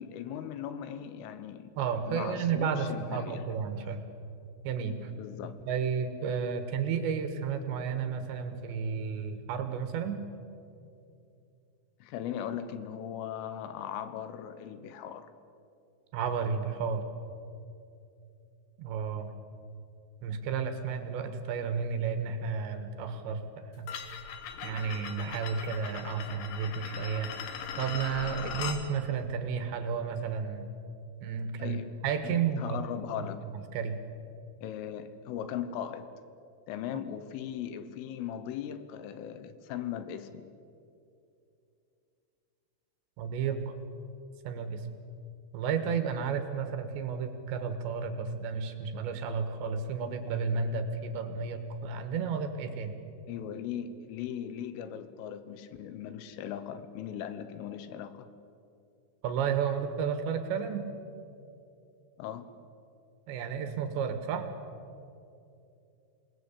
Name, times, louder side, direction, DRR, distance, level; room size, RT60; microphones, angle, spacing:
voice 1, 0.0-1.7 2.1-3.4 3.8-3.9 5.1-5.5 12.0-15.3 31.6-32.0 32.2-33.4 34.6-36.1 36.7-40.5 53.3-58.3 62.2-62.5, left 9 dB, 80° left, 12 dB, 3.6 m, -38 dB
voice 2, 1.8-4.0 4.6-5.1 5.7-10.2 16.1-17.0 18.8-19.3 20.2-23.9 24.6-27.3 27.8-30.7 31.2-31.8 32.0-32.8 33.1-33.2 33.7-34.0 43.2-43.8 44.4-44.9 45.5-52.9 59.2-60.9 63.3-64.5, right 6 dB, 70° right, 8 dB, 3.4 m, -32 dB
sound 1, 23.9-28.8, left 7 dB, 60° left, 3.1 m, -39 dB
27.5 x 19.0 x 8.4 m, 2.7 s
omnidirectional pair, 5.8 m